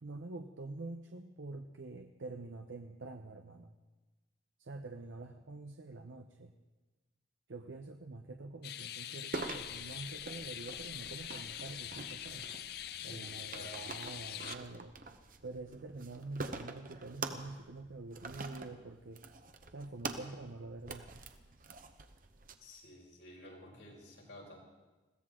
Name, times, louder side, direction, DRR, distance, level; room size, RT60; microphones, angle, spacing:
voice 1, 0.0-3.7 4.6-6.5 7.5-12.5 13.0-15.0 15.4-19.2 19.7-21.1, right 2 dB, 85° right, 5 dB, 0.8 m, -46 dB
sound 1, 8.6-14.6, left 11 dB, 55° left, 0.5 m, -44 dB
sound 2, 9.3-22.5, right 3 dB, 45° right, 0.9 m, -46 dB
voice 2, 13.0-13.8 22.5-24.6, left 1 dB, 90° left, -3 dB, 5.2 m, -52 dB
21.0 x 16.5 x 3.8 m, 1.2 s
head